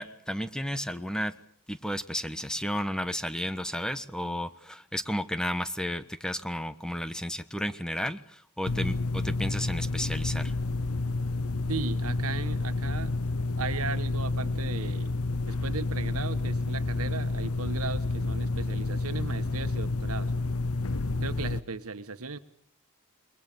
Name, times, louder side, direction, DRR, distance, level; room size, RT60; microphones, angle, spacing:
voice 1, 0.0-1.3 1.7-10.5, equal, 5° left, 11 dB, 1.2 m, -33 dB
sound 1, 8.7-21.6, left 3 dB, 75° left, 1.0 m, -30 dB
voice 2, 11.7-13.2 13.6-15.1 15.5-20.3 21.2-22.4, right 4 dB, 70° right, 11 dB, 1.7 m, -36 dB
28.5 x 22.5 x 7.1 m, 0.63 s
head